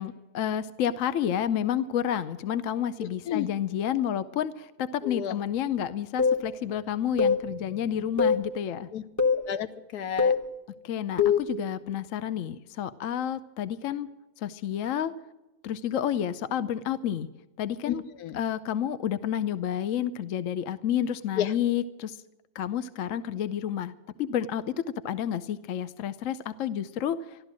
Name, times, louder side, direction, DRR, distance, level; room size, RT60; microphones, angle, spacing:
voice 1, 0.0-8.9 10.8-14.1 14.4-15.1 15.6-17.3 17.6-18.0 18.3-22.2 22.5-27.4, left 10 dB, 65° left, 13 dB, 1.0 m, -30 dB
voice 2, 5.0-5.4 8.9-9.0 9.3-10.3 17.9-18.4 21.4-21.5, left 9 dB, 80° left, 12 dB, 1.3 m, -31 dB
sound 1, 6.2-6.4 7.2-7.4 8.2-8.4 9.2-9.4 10.2-10.4 11.2-11.5, left 6 dB, 15° left, 0.8 m, -22 dB
13.5 x 12.5 x 7.5 m, 0.99 s
omnidirectional pair, 1.7 m